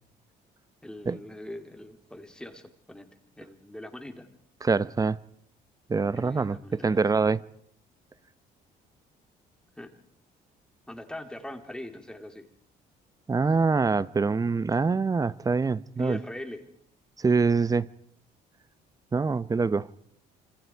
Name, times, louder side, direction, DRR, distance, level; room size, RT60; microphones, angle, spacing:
voice 1, 0.8-3.1 3.4-4.3 6.2-7.0 9.8-9.9 10.9-12.5 16.0-16.7, left 1 dB, 5° left, 3.4 m, -41 dB
voice 2, 4.6-5.2 5.9-7.4 13.3-16.2 17.2-17.9 19.1-19.9, right 4 dB, 20° right, 0.9 m, -25 dB
27.0 x 26.0 x 4.7 m
cardioid pair, 110°, 17 cm